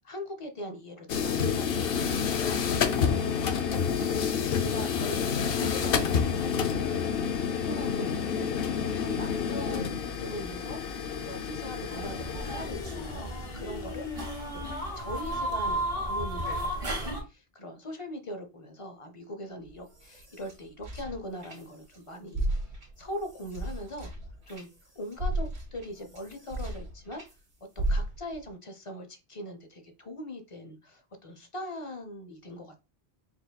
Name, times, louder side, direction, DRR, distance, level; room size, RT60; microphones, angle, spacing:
voice 1, 0.0-2.6 4.5-10.8 11.2-14.1 14.5-22.5 23.0-24.1 24.5-24.7 25.0-27.2 27.8-32.8, equal, 40° left, 6 dB, 0.6 m, -41 dB
sound 1, 1.1-15.4, left 6 dB, 70° left, 0.8 m, -29 dB
sound 2, 11.9-17.2, right 1 dB, 35° right, 1.0 m, -34 dB
sound 3, 19.6-22.0 22.3-27.3 27.8-28.5, right 1 dB, 85° right, 1.7 m, -35 dB
4.5 x 3.8 x 2.2 m, 0.29 s
omnidirectional pair, 1.1 m